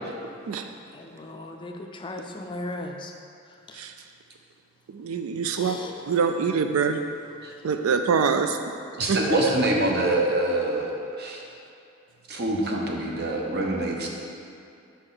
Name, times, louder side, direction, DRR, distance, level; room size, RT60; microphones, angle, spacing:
voice 1, 0.9-3.1 3.7-3.8 5.5-6.0, left 2 dB, 25° left, 3 dB, 0.4 m, -37 dB
voice 2, 4.9-5.8 6.1-7.0 7.6-8.6 9.1-9.2, right 6 dB, 90° right, 7 dB, 0.4 m, -24 dB
voice 3, 9.0-11.4 12.3-14.1, right 1 dB, 50° right, -1 dB, 0.9 m, -25 dB
6.3 x 5.4 x 3.9 m, 2.6 s
head